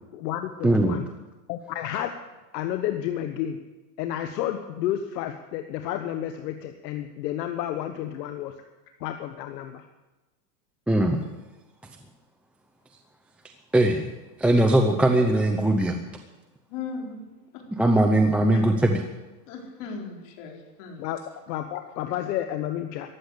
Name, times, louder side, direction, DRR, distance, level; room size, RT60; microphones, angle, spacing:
voice 1, 0.1-1.0 1.5-2.2 2.5-3.6 4.0-8.6 9.0-9.9 21.0-23.1, left 11 dB, 75° left, 7 dB, 1.3 m, -31 dB
voice 2, 0.6-1.0 10.9-11.2 13.7-14.1 14.4-16.0 17.8-19.0, right 1 dB, 5° right, 3 dB, 0.5 m, -20 dB
voice 3, 16.7-17.2 17.5-17.6 18.5-18.6 19.5-21.1, left 5 dB, 50° left, 1 dB, 4.2 m, -37 dB
14.5 x 11.5 x 8.1 m, 1.1 s
supercardioid pair, 145°, 50 cm